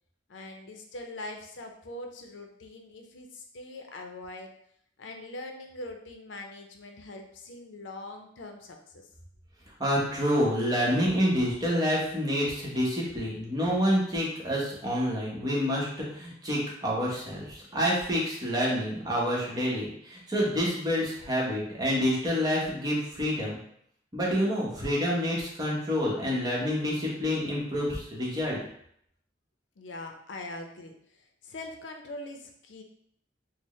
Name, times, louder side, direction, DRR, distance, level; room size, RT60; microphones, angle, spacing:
voice 1, 0.3-4.5 5.0-9.1 29.8-32.8, left 2 dB, 85° left, 3 dB, 0.5 m, -42 dB
voice 2, 9.8-23.6 24.1-28.6, equal, 20° right, -4 dB, 0.9 m, -28 dB
4.4 x 2.1 x 3.1 m, 0.70 s
head